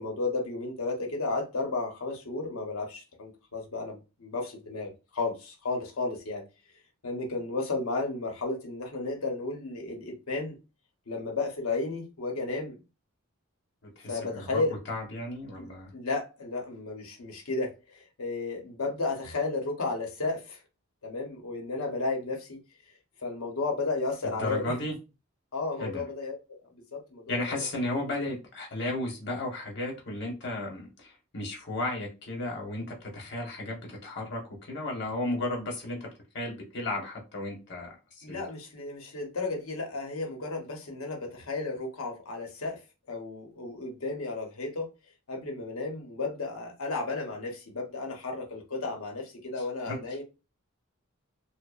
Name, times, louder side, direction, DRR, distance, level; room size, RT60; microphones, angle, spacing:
voice 1, 0.0-6.4 7.0-10.5 11.1-12.8 14.1-14.8 15.6-20.6 21.0-22.6 23.2-24.9 25.5-26.3 26.9-27.6 38.2-42.8 43.1-44.9 45.3-50.2, left 3 dB, 90° left, 0.8 m, -33 dB
voice 2, 14.0-14.6 14.9-15.9 24.4-24.9 25.8-26.0 27.3-36.1 36.3-38.5 49.8-50.0, left 2 dB, 55° left, 0.9 m, -34 dB
2.8 x 2.1 x 2.3 m
head